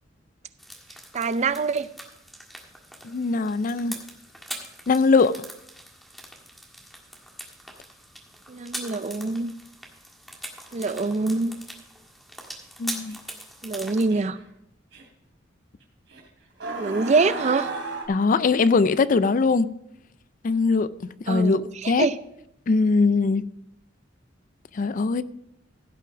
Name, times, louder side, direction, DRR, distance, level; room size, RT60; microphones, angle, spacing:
sound 1, 0.6-14.1, equal, ahead, 1.6 m, -42 dB
voice 1, 1.1-1.9 8.5-9.6 10.7-11.6 13.6-14.4 16.8-17.7 21.3-22.2, right 3 dB, 35° right, 0.4 m, -25 dB
voice 2, 3.0-4.0 4.9-5.4 12.8-13.2 18.1-19.7 20.4-20.9 21.3-21.6 21.9-22.1 22.7-23.4 24.8-25.2, left 4 dB, 45° left, 0.4 m, -21 dB
braying donkey - âne brayant, 13.1-13.2 14.1-14.4 14.9-15.0 16.1-16.2 16.6-18.1, right 3 dB, 75° right, 3.0 m, -33 dB
16.0 x 5.9 x 4.9 m
head